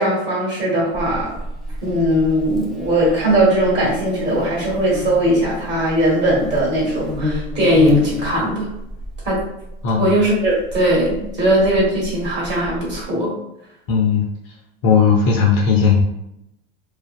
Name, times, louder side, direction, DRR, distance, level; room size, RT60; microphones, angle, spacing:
voice 1, 0.0-1.3 1.8-8.7 9.2-9.4 10.0-13.3, right 1 dB, 35° right, -4 dB, 1.5 m, -19 dB
Buzz, 0.9-13.0, left 2 dB, ahead, 0.4 m, -29 dB
voice 2, 9.8-10.1 13.9-14.5 14.8-16.0, left 6 dB, 50° left, -2 dB, 0.6 m, -16 dB
2.5 x 2.3 x 2.3 m, 0.84 s
hypercardioid pair, 105°, 31 cm